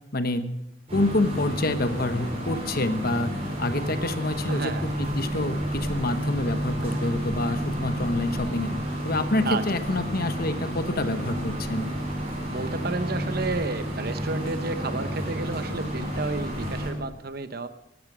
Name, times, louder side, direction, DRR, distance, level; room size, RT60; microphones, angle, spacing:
voice 1, 0.1-0.5 0.9-8.7 9.0-11.9, left 2 dB, 50° left, 10 dB, 1.0 m, -27 dB
sound 1, 0.9-16.9, equal, 30° right, 6.1 m, -30 dB
voice 2, 4.5-4.9 6.8-7.0 9.5-9.6 12.5-17.7, right 3 dB, 50° right, 11 dB, 0.9 m, -31 dB
15.5 x 12.5 x 6.1 m, 0.86 s
head